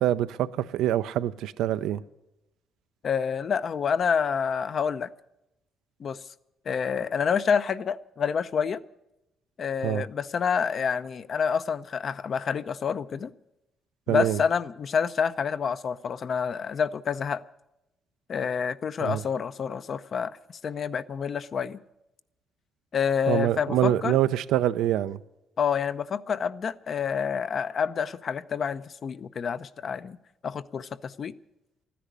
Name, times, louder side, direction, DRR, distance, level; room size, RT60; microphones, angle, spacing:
voice 1, 0.0-2.0 9.8-10.0 14.1-14.4 19.0-19.2 23.3-25.2, right 12 dB, 90° right, 0.5 m, -25 dB
voice 2, 3.0-5.1 6.0-6.2 6.7-8.8 9.6-13.3 14.1-17.4 18.3-20.3 20.6-21.8 22.9-24.2 25.6-30.2 30.4-31.3, left 6 dB, 50° left, 0.6 m, -28 dB
13.5 x 10.0 x 9.5 m
cardioid pair, 90°, 0 cm